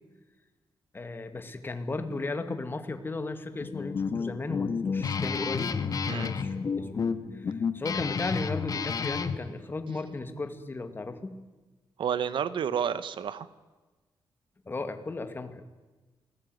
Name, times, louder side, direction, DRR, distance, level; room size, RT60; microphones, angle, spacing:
voice 1, 0.9-5.8 6.1-7.1 7.3-11.4 14.7-15.6, left 3 dB, 25° left, 8 dB, 2.2 m, -35 dB
Guitar, 3.6-9.4, left 5 dB, 45° left, 1.7 m, -31 dB
voice 2, 12.0-13.5, right 8 dB, 75° right, 14 dB, 1.3 m, -30 dB
27.5 x 20.5 x 9.5 m, 1.2 s
wide cardioid pair, 145°, 8 cm